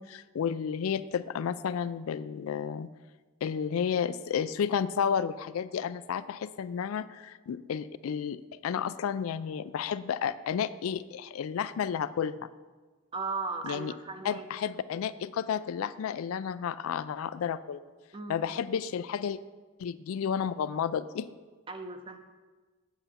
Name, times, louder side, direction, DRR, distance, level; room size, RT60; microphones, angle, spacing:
voice 1, 0.0-2.9 3.4-12.5 13.6-13.9 14.2-17.8 18.3-19.4 19.8-21.3, left 7 dB, 85° left, 15 dB, 0.3 m, -32 dB
voice 2, 13.1-14.4 18.1-18.5 21.7-22.2, right 3 dB, 25° right, 7 dB, 0.6 m, -37 dB
8.1 x 7.8 x 4.2 m, 1.3 s
head